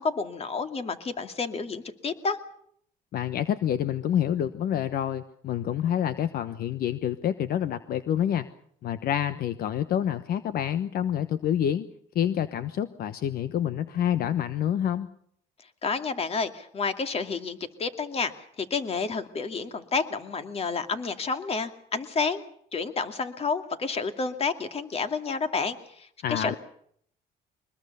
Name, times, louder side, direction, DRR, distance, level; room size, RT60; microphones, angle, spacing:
voice 1, 0.0-2.4 15.8-22.5 22.7-26.6, left 4 dB, 35° left, 8 dB, 2.5 m, -30 dB
voice 2, 3.1-8.5 8.8-11.9 12.1-15.1 26.2-26.5, left 10 dB, 65° left, 12 dB, 1.1 m, -27 dB
23.5 x 21.0 x 6.9 m, 0.66 s
cardioid pair, 110°, 17 cm